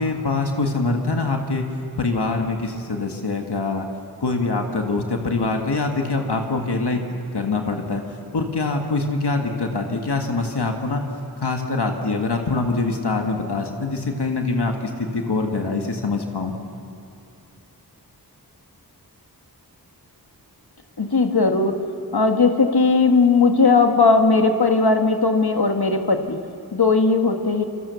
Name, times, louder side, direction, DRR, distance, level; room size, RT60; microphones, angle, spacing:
voice 1, 0.0-1.7 2.0-3.9 4.2-8.0 8.3-11.0 11.4-16.5, left 3 dB, 90° left, 3 dB, 1.9 m, -24 dB
voice 2, 21.0-21.7 22.1-26.4 26.7-27.6, left 4 dB, 70° left, 5 dB, 1.7 m, -18 dB
27.5 x 24.0 x 7.0 m, 2.6 s
wide cardioid pair, 55°, 39 cm